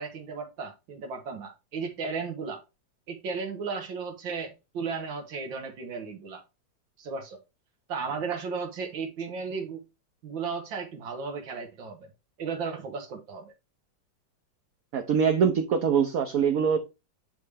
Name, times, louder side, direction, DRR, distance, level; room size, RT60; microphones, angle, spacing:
voice 1, 0.0-2.6 3.1-6.4 7.0-7.4 7.9-9.8 10.2-12.1 12.4-13.5, right 5 dB, 90° right, 2.0 m, -35 dB
voice 2, 14.9-16.8, right 7 dB, 60° right, 1.1 m, -23 dB
9.8 x 3.3 x 3.4 m
omnidirectional pair, 2.0 m